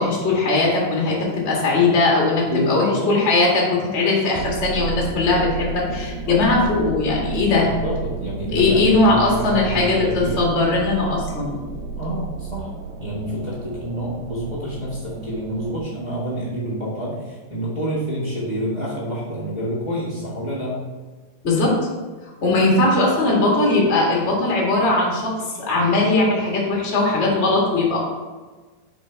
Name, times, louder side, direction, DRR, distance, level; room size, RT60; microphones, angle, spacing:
voice 1, 0.0-7.7 8.5-11.6 21.4-21.8 22.2-25.3 25.6-28.0, left 2 dB, 30° left, -3 dB, 1.2 m, -19 dB
voice 2, 2.5-3.1 6.3-6.5 7.6-10.4 12.0-12.7 13.0-20.8, equal, 30° right, -9 dB, 0.8 m, -28 dB
sound 1, 4.3-15.8, right 4 dB, 85° right, 2.5 m, -32 dB
6.1 x 5.1 x 4.5 m, 1.3 s
omnidirectional pair, 4.0 m